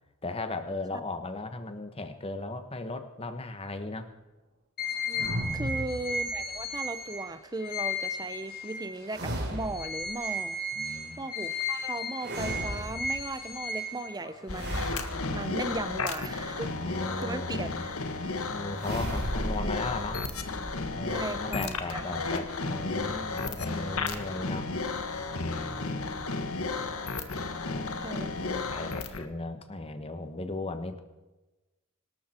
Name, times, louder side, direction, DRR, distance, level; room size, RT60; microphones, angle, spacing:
voice 1, 0.2-4.1 5.4-5.9 10.7-11.2 16.7-17.9 18.5-20.3 20.9-24.7 25.4-26.1 27.5-27.8 28.3-31.0, left 2 dB, 25° left, 8 dB, 1.3 m, -37 dB
sound 1, 4.8-9.2 9.6-14.5, left 2 dB, 45° left, 3.2 m, -35 dB
voice 2, 5.1-10.6 11.2-16.9 17.2-18.3 21.1-22.0 22.3-22.4 23.3-23.4 28.0-28.5, right 2 dB, 20° right, 13 dB, 0.7 m, -37 dB
sound 2, 5.1-6.7 9.1-10.1 12.2-13.4 14.5-16.3 18.8-22.3, equal, 50° right, 3.3 m, -36 dB
sound 3, 14.5-29.3, left 3 dB, 80° left, 1.6 m, -33 dB
25.0 x 13.0 x 4.5 m, 1.1 s
head